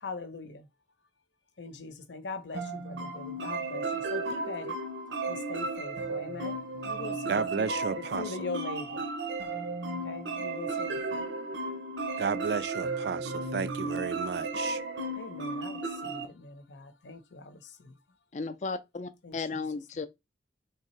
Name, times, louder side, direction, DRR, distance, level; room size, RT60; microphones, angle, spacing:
voice 1, 0.0-0.6 1.6-4.8 5.3-6.6 6.9-9.0 10.0-11.0 15.1-17.9 19.2-19.7, left 3 dB, 80° left, 0.8 m, -42 dB
sound 1, 2.5-16.3, right 2 dB, 90° right, 0.8 m, -34 dB
voice 2, 7.3-8.5 12.2-14.8, right 5 dB, 65° right, 0.4 m, -32 dB
voice 3, 18.3-20.1, left 4 dB, 40° left, 0.4 m, -35 dB
3.5 x 2.8 x 4.3 m
head